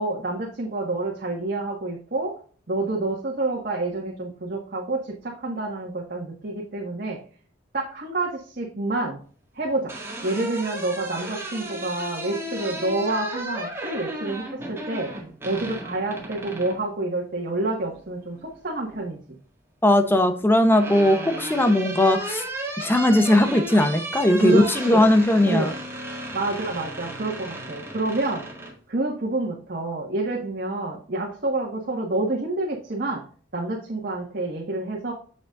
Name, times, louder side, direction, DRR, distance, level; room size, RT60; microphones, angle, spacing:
voice 1, 0.0-2.4 2.7-7.2 7.7-9.2 9.5-9.9 10.2-15.1 15.4-19.2 24.4-25.0 25.4-25.8 26.3-28.4 28.9-33.2 33.5-35.1, right 2 dB, 55° right, -2 dB, 1.6 m, -28 dB
sound 1, 9.6-16.8 18.3-19.0 20.2-28.7, right 1 dB, 15° right, 1.8 m, -34 dB
voice 2, 19.8-22.4 22.8-25.7, left 1 dB, 10° left, 8 dB, 0.8 m, -19 dB
8.1 x 7.0 x 2.5 m, 0.42 s
head